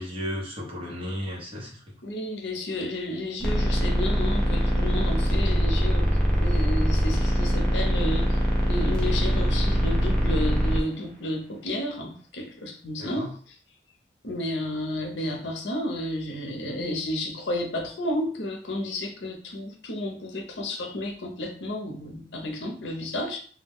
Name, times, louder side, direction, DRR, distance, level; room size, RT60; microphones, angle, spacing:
voice 1, 0.0-1.9 13.0-13.3, equal, 30° right, -3 dB, 0.8 m, -34 dB
voice 2, 2.0-6.1 6.4-8.4 8.7-13.3 14.2-23.4, left 1 dB, 75° left, 2 dB, 0.6 m, -31 dB
sound 1, 3.4-10.8, equal, 5° left, 0.6 m, -23 dB
2.2 x 2.1 x 3.5 m, 0.43 s
head